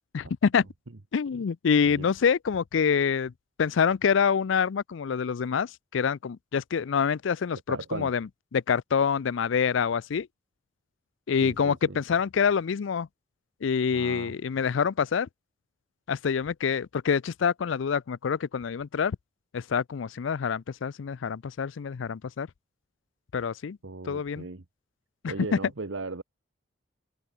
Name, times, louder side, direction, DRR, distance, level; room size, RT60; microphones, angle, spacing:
voice 1, 0.1-0.7 1.1-3.3 3.6-10.3 11.3-13.1 13.6-15.3 16.1-19.2 19.5-22.5 23.3-23.8 24.1-24.5 25.2-25.3, left 6 dB, 80° left, 0.4 m, -26 dB
voice 2, 7.7-8.1 11.4-12.0 13.9-14.3 23.8-24.6 25.3-26.2, right 3 dB, 80° right, 1.2 m, -37 dB
head